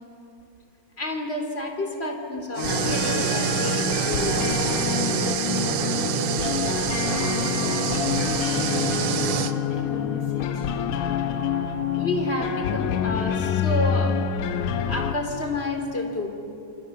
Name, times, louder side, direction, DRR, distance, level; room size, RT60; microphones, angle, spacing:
voice 1, 1.0-4.5 11.9-14.3 14.9-16.3, left 1 dB, 20° left, 4 dB, 3.1 m, -29 dB
sound 1, 2.6-15.1, left 9 dB, 85° left, 2.6 m, -27 dB
sound 2, 2.6-9.5, right 9 dB, 65° right, 1.6 m, -26 dB
voice 2, 5.0-10.7, left 1 dB, 45° left, -3 dB, 8.3 m, -38 dB
29.0 x 28.0 x 7.2 m, 2.9 s
omnidirectional pair, 3.6 m